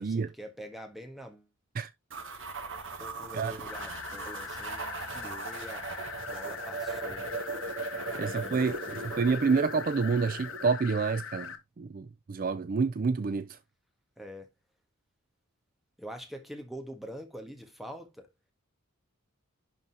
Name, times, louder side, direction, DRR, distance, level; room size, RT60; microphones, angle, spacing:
voice 1, 0.0-1.5 3.0-5.9 6.3-7.4 8.1-9.2 14.2-14.5 16.0-18.3, equal, ahead, 1.4 m, -45 dB
sound 1, 2.1-10.7, right 3 dB, 60° right, 1.3 m, -39 dB
sound 2, 3.7-11.6, left 7 dB, 65° left, 1.0 m, -42 dB
voice 2, 8.1-8.8 9.2-13.6, right 4 dB, 40° right, 0.4 m, -28 dB
11.0 x 3.9 x 2.8 m
head